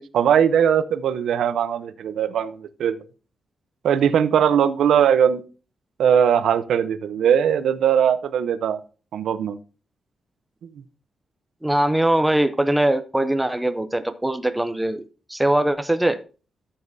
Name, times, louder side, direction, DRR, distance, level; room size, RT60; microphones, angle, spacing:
voice 1, 0.0-3.0 3.8-5.4 6.0-8.8 9.1-9.6, right 8 dB, 85° right, 12 dB, 0.7 m, -20 dB
voice 2, 11.6-16.2, right 1 dB, 5° right, 9 dB, 0.5 m, -21 dB
13.0 x 7.3 x 2.7 m, 0.35 s
wide cardioid pair, 180°, 0 cm